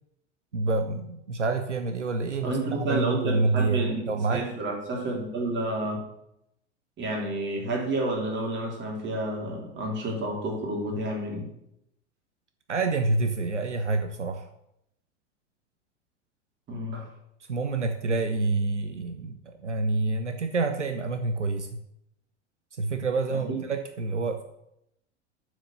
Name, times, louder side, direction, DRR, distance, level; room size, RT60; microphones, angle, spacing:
voice 1, 0.5-4.7 12.7-14.5 17.5-21.8 22.8-24.4, right 3 dB, 85° right, 7 dB, 0.8 m, -27 dB
voice 2, 2.4-6.0 7.0-11.5 16.7-17.0 23.5-23.6, right 1 dB, 30° right, -1 dB, 3.4 m, -30 dB
7.5 x 6.3 x 6.8 m, 0.79 s
figure-of-eight pair, 85°, 35 cm